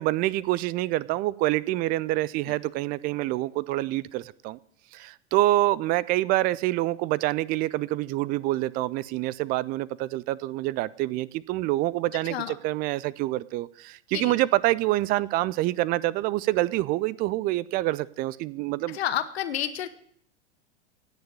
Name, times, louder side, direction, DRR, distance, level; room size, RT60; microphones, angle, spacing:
voice 1, 0.0-4.6 4.9-19.0, right 17 dB, 25° right, 22 dB, 0.5 m, -26 dB
voice 2, 18.9-19.9, left 10 dB, 60° left, 10 dB, 1.5 m, -30 dB
17.0 x 6.5 x 9.6 m, 0.67 s
figure-of-eight pair, 90°, 35 cm